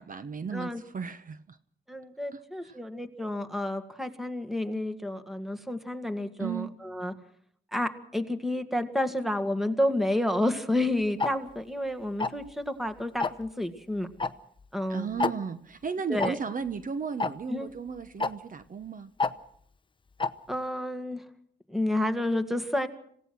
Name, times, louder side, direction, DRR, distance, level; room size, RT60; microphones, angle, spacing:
voice 1, 0.0-1.6 2.3-2.8 6.4-6.8 14.9-19.1, right 6 dB, 45° right, 11 dB, 1.0 m, -35 dB
voice 2, 1.9-7.1 7.7-14.1 14.7-15.1 16.1-16.4 17.5-17.7 20.5-21.2 21.7-22.9, left 1 dB, ahead, 7 dB, 1.8 m, -30 dB
Tick-tock, 11.2-11.3 12.2-12.5 13.2-13.5 14.2-14.3 14.6-14.7 15.2-15.3 16.2-16.3 17.2-17.3 18.2-18.3 19.2-19.3 20.2-20.3, left 4 dB, 25° left, 0.9 m, -27 dB
27.0 x 17.0 x 6.2 m, 0.67 s
wide cardioid pair, 130°, 19 cm